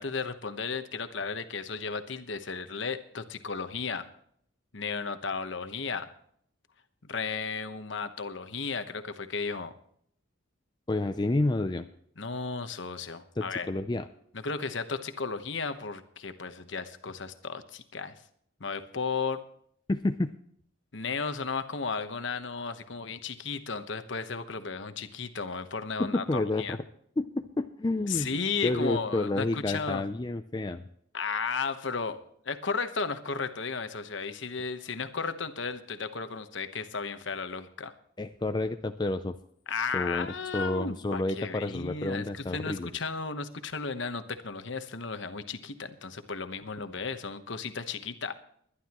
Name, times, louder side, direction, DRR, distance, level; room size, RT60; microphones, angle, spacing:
voice 1, 0.0-4.1 4.7-6.1 7.1-9.7 12.2-13.7 14.3-18.1 18.6-19.4 20.9-26.8 28.1-30.0 31.1-32.2 32.4-37.9 39.7-48.3, left 5 dB, 65° left, 9 dB, 1.1 m, -34 dB
voice 2, 10.9-11.9 13.4-14.1 19.9-20.3 26.0-26.8 27.2-28.3 28.6-30.8 38.2-39.3 39.9-40.3 40.5-42.9, left 2 dB, 20° left, 8 dB, 0.4 m, -29 dB
21.0 x 11.5 x 3.0 m, 0.65 s
head